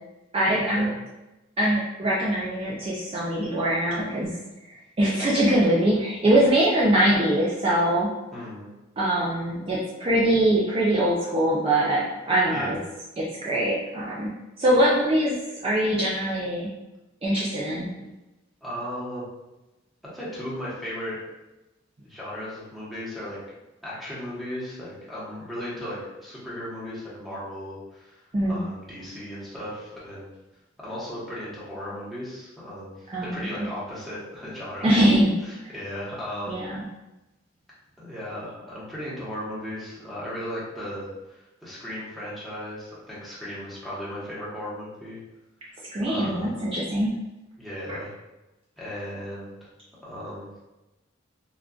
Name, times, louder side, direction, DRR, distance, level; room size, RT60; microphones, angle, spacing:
voice 1, 0.3-0.9 1.6-4.3 5.0-8.1 9.0-12.8 13.2-14.3 14.6-15.4 15.6-16.7 17.2-17.9 28.3-28.6 33.1-33.7 34.8-35.3 35.6-35.7 36.5-36.8 45.9-47.1 47.9-48.0, right 1 dB, 30° right, -6 dB, 0.4 m, -23 dB
voice 2, 8.3-8.7 12.5-12.8 18.6-19.2 20.1-21.2 22.0-23.4 23.8-28.2 28.5-30.3 30.8-35.1 35.4-36.6 38.0-45.2 46.1-46.6 47.6-48.1 48.8-49.5 50.0-50.6, equal, ahead, -9 dB, 1.0 m, -36 dB
3.7 x 2.3 x 2.3 m, 1.0 s
head